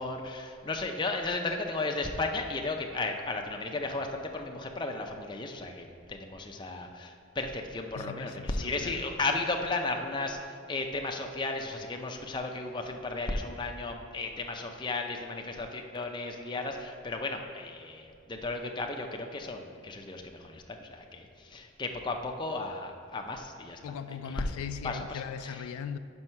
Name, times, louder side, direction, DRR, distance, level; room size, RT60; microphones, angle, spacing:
voice 1, 0.0-23.8 24.2-24.4 24.8-25.7, left 3 dB, 20° left, 3 dB, 0.4 m, -34 dB
voice 2, 8.0-9.0 23.8-26.0, left 7 dB, 90° left, 14 dB, 0.3 m, -39 dB
5.9 x 5.3 x 5.5 m, 2.4 s
head